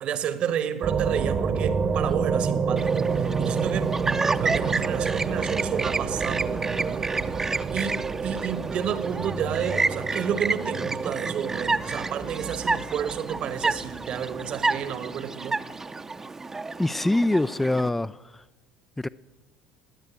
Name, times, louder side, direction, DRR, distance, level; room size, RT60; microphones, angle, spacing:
voice 1, 0.0-4.0 4.4-7.0 7.7-15.6, right 8 dB, 50° right, 1.4 m, -31 dB
sound 1, 0.8-15.2, right 5 dB, 35° right, 1.1 m, -29 dB
Chirp tweet, 2.8-17.9, right 3 dB, 20° right, 0.8 m, -30 dB
voice 2, 16.8-18.4 19.0-19.1, left 2 dB, 10° left, 0.4 m, -24 dB
18.5 x 9.1 x 8.4 m
hypercardioid pair, 75°, 2 cm